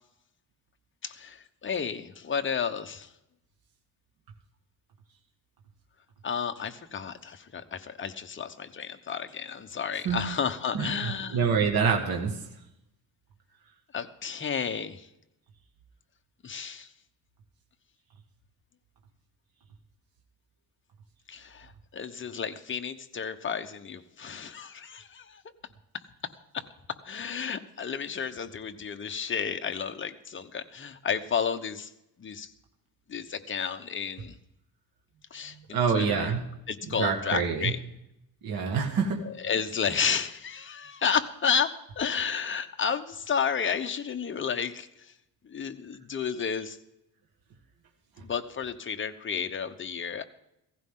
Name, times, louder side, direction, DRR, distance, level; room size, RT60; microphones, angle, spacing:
voice 1, 1.0-3.1 6.2-11.4 13.9-15.1 16.4-16.9 21.3-25.4 26.5-26.6 27.0-31.9 32.2-32.5 33.1-34.4 35.3-36.3 36.7-37.8 39.2-44.9 45.5-46.8 48.2-50.2, left 6 dB, 30° left, 7 dB, 1.0 m, -32 dB
voice 2, 10.7-12.3 35.7-36.4 36.9-37.7 38.4-39.2, right 6 dB, 65° right, 1 dB, 1.9 m, -26 dB
16.5 x 15.0 x 3.8 m, 0.85 s
cardioid pair, 135°, 38 cm